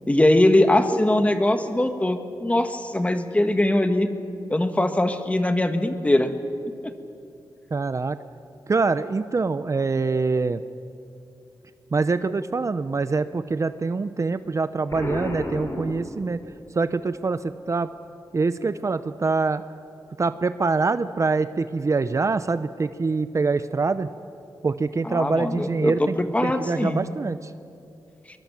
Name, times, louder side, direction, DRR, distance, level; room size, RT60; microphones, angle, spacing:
voice 1, 0.1-4.1 4.5-6.3 25.0-27.1, left 1 dB, 15° left, 8 dB, 1.6 m, -21 dB
voice 2, 7.7-8.2 8.7-10.6 11.9-16.4 16.7-17.9 18.3-19.6 20.2-24.1 24.6-26.2 26.4-27.5, right 4 dB, 40° right, 12 dB, 0.7 m, -24 dB
Explosion, 14.9-16.7, left 1 dB, 40° left, 4.3 m, -32 dB
23.5 x 23.0 x 7.5 m, 2.5 s
wide cardioid pair, 100°, 8 cm